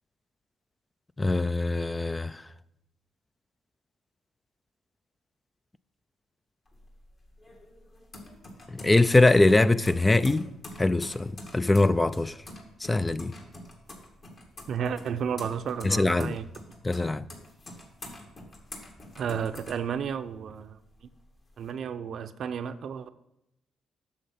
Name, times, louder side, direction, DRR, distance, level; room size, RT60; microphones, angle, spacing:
voice 1, 1.2-2.4 8.7-10.5 10.8-12.3 12.8-13.3 15.8-16.4 16.8-17.3, left 2 dB, 15° left, 0.3 m, -22 dB
sound 1, 6.7-20.5 20.9-21.7, left 1 dB, 40° left, 2.0 m, -46 dB
voice 2, 14.7-16.5 19.2-20.8 21.6-23.1, right 7 dB, 65° right, 0.6 m, -32 dB
8.5 x 6.6 x 5.8 m
cardioid pair, 90°, 0 cm